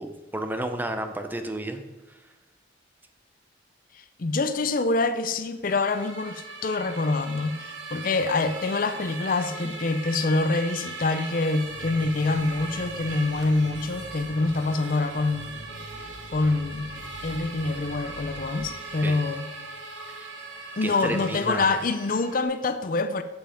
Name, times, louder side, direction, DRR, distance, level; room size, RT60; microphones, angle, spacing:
voice 1, 0.0-1.8 2.1-2.2 9.6-9.7 19.0-19.2 20.2-20.3 20.8-21.7, right 1 dB, 10° right, 7 dB, 0.5 m, -32 dB
voice 2, 4.2-15.5 16.3-17.0 17.2-19.5 20.8-23.2, left 3 dB, 45° left, 11 dB, 0.5 m, -26 dB
sound 1, 5.7-22.4, right 3 dB, 75° right, 1.4 m, -39 dB
sound 2, 11.6-18.7, equal, 75° left, 1.2 m, -44 dB
8.0 x 7.1 x 5.0 m, 1.1 s
head